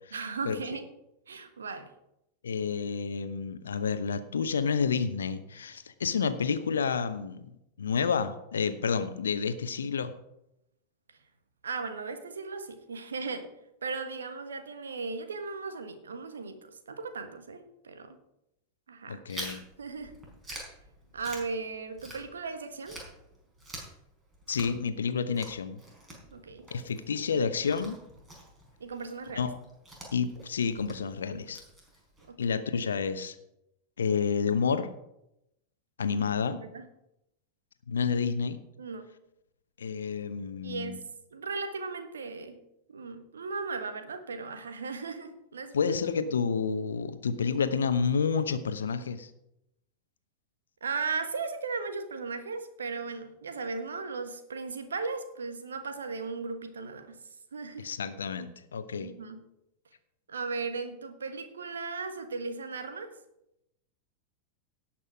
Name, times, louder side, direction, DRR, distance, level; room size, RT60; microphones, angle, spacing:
voice 1, 0.1-0.9 1.3-1.9 11.1-11.2 11.6-13.5 13.8-18.2 18.9-19.2 19.8-20.1 21.1-23.0 26.3-26.7 28.8-29.4 32.3-32.6 36.5-36.9 38.8-39.1 40.6-41.0 41.3-42.6 42.9-45.9 50.8-57.2 57.5-57.9 59.0-59.4 60.3-63.1, right 4 dB, 70° right, 8 dB, 1.4 m, -37 dB
voice 2, 2.4-7.5 7.8-10.1 19.1-19.6 24.5-25.8 26.7-28.0 29.4-29.6 30.1-31.6 32.4-33.3 34.0-34.9 36.0-36.6 37.9-38.6 39.8-41.0 45.7-49.3 57.8-59.1, left 6 dB, 70° left, 11 dB, 0.9 m, -29 dB
Chewing mastication, 19.3-22.5 22.8-32.3, right 1 dB, 15° right, 4.3 m, -46 dB
17.5 x 6.0 x 4.9 m, 0.83 s
figure-of-eight pair, 90°, 0 cm